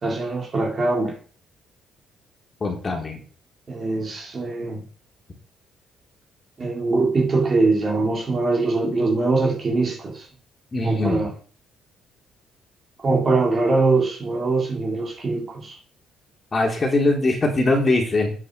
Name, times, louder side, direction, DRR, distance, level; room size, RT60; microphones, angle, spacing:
voice 1, 0.0-1.2 3.7-4.9 6.6-10.3 10.8-11.3 13.0-15.8, right 3 dB, 35° right, 3.7 m, -22 dB
voice 2, 2.6-3.2 10.7-11.3 16.5-18.3, left 2 dB, 25° left, 3.7 m, -21 dB
8.8 x 8.2 x 6.9 m
cardioid pair, 120°, 0 cm